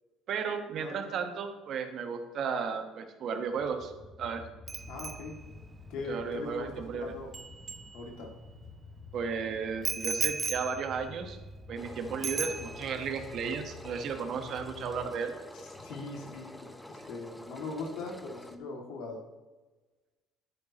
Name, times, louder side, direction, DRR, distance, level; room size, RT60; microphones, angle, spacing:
voice 1, 0.3-3.9 4.2-4.5 6.1-7.0 9.1-11.4 11.7-15.3, right 6 dB, 60° right, 6 dB, 1.3 m, -34 dB
voice 2, 0.8-1.1 4.9-5.4 5.9-7.3 7.9-8.3 15.5-16.5 16.9-19.2, left 3 dB, 75° left, 1 dB, 2.3 m, -40 dB
sound 1, 3.5-15.1, left 4 dB, 35° left, 1.2 m, -49 dB
Bicycle bell, 4.7-8.5 9.8-11.9 12.2-13.1 13.4-13.7, right 5 dB, 35° right, 0.6 m, -37 dB
Engine, 11.8-18.6, left 1 dB, 5° left, 0.9 m, -48 dB
10.5 x 10.5 x 3.0 m, 1.2 s
supercardioid pair, 80°, 0 cm